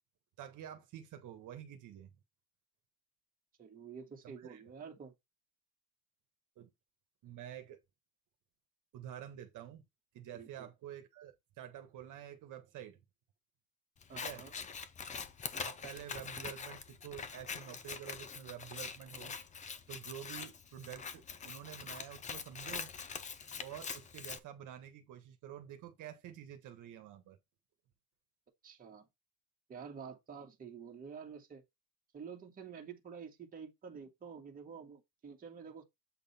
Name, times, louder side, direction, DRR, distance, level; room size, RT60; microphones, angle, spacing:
voice 1, 0.4-2.1 4.2-4.6 6.6-6.7 7.2-7.8 8.9-9.8 10.1-13.0 14.1-14.4 15.4-19.3 19.9-22.9 23.6-27.4, right 10 dB, 55° right, 1.4 m, -49 dB
voice 2, 3.6-5.1 10.3-10.7 14.1-14.5 28.6-29.1 29.7-31.6 32.1-35.8, right 6 dB, 25° right, 1.7 m, -49 dB
Scissors, 14.0-24.4, left 6 dB, 20° left, 0.5 m, -44 dB
8.0 x 3.9 x 4.3 m
cardioid pair, 170°, 36 cm